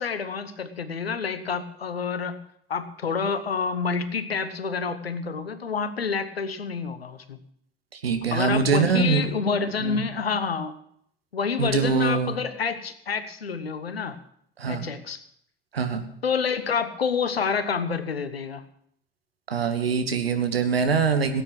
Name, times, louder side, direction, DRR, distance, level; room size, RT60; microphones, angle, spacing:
voice 1, 0.0-2.4 2.7-7.4 8.3-10.7 11.3-14.2 14.7-15.2 16.2-18.6, left 5 dB, 85° left, 13 dB, 0.9 m, -28 dB
voice 2, 7.9-9.3 9.8-10.1 11.6-12.3 14.6-14.9 15.7-16.0 19.5-21.4, right 5 dB, 85° right, 7 dB, 1.3 m, -23 dB
17.5 x 9.1 x 6.0 m, 0.67 s
figure-of-eight pair, 55°, 29 cm